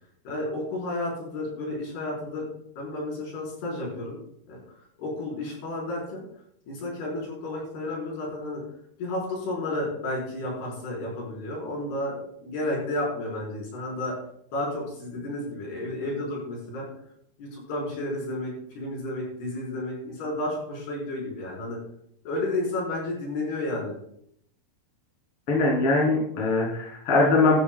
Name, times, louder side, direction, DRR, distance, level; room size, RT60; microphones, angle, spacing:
voice 1, 0.2-2.5 2.8-4.2 4.5-4.6 5.0-6.2 6.7-8.6 9.0-14.1 14.5-16.9 17.4-21.8 22.2-24.0, left 2 dB, 70° left, -3 dB, 6.3 m, -32 dB
voice 2, 25.5-27.6, left 3 dB, 35° left, -4 dB, 3.7 m, -21 dB
16.0 x 12.5 x 2.3 m, 0.70 s
omnidirectional pair, 4.8 m